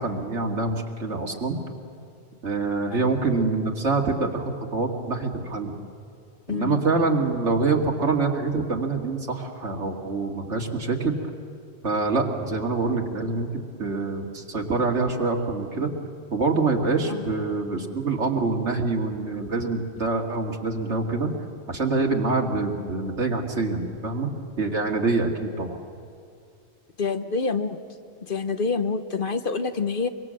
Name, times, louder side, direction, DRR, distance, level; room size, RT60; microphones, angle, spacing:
voice 1, 0.0-1.6 2.4-5.7 6.5-11.1 11.8-15.9 16.3-21.3 21.7-24.3 24.6-25.8, right 3 dB, 90° right, 1 dB, 2.5 m, -25 dB
voice 2, 6.5-6.8 17.1-17.3 27.0-27.8 28.2-30.1, left 4 dB, 50° left, 9 dB, 1.1 m, -27 dB
24.5 x 24.0 x 7.6 m, 2.4 s
omnidirectional pair, 1.2 m